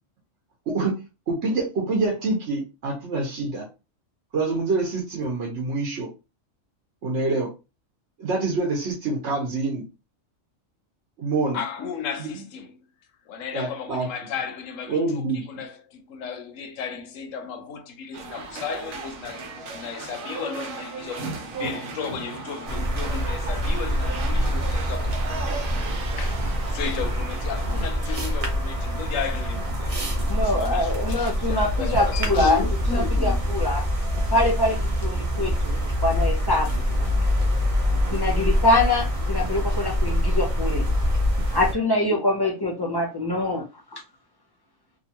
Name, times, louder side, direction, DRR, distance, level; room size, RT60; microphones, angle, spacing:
voice 1, 1.3-3.7 4.3-6.1 7.0-7.5 8.2-9.8 11.2-11.6 12.2-12.3 13.5-14.1 14.9-15.4, right 3 dB, 60° right, 1.1 m, -26 dB
voice 2, 11.5-12.8 13.3-19.4 19.7-21.3 21.5-25.5 26.2-26.4 26.7-33.4, left 6 dB, 75° left, 0.9 m, -34 dB
sound 1, 18.1-27.9, right 3 dB, 80° right, 1.2 m, -36 dB
sound 2, 22.6-41.7, equal, 40° right, 0.5 m, -25 dB
voice 3, 30.2-32.6 32.9-33.8 34.3-36.8 38.0-40.8 41.5-43.6, left 2 dB, 30° left, 0.4 m, -24 dB
2.9 x 2.4 x 2.8 m
omnidirectional pair, 1.4 m